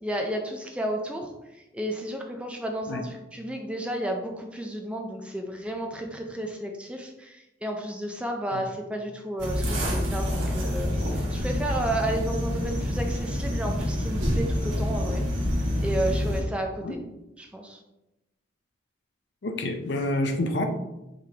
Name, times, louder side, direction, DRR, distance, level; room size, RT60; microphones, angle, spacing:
voice 1, 0.0-15.2 15.8-17.0 17.4-17.8, right 1 dB, 5° right, 2 dB, 0.4 m, -32 dB
sound 1, 9.4-16.4, equal, 80° right, 1.4 m, -27 dB
voice 2, 19.4-20.7, left 1 dB, 60° left, 6 dB, 0.5 m, -28 dB
5.0 x 3.6 x 2.8 m, 0.95 s
head